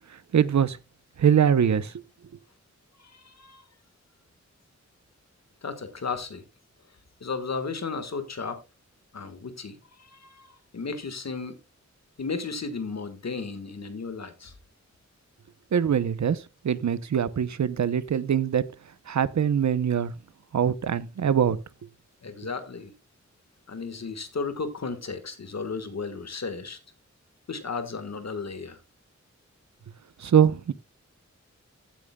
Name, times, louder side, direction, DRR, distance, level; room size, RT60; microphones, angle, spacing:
voice 1, 0.3-0.8 1.2-1.9 15.7-16.4 16.6-18.6 19.1-20.1 20.5-21.6 30.2-30.7, right 8 dB, 70° right, 0.7 m, -23 dB
voice 2, 3.0-3.6 5.6-6.4 7.2-8.6 9.1-11.6 12.2-14.5 22.2-22.9 23.7-26.8 27.5-28.8, left 4 dB, 65° left, 1.5 m, -34 dB
15.0 x 8.7 x 2.2 m
wide cardioid pair, 100°, 29 cm